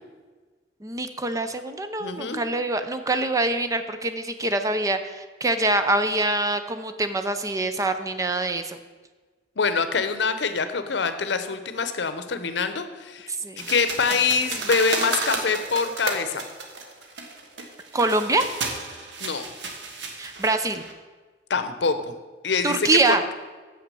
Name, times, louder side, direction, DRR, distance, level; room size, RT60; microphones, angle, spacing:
voice 1, 0.8-8.8 13.4-13.7 17.9-18.5 20.2-20.8 22.6-23.2, right 2 dB, 20° right, 8 dB, 0.5 m, -24 dB
voice 2, 2.0-2.4 9.6-13.3 13.6-16.4 19.2-19.5 21.5-22.1 22.4-23.2, left 5 dB, 70° left, 10 dB, 0.7 m, -25 dB
sound 1, 13.6-20.9, right 3 dB, 80° right, 1.3 m, -32 dB
7.1 x 6.0 x 6.8 m, 1.4 s
head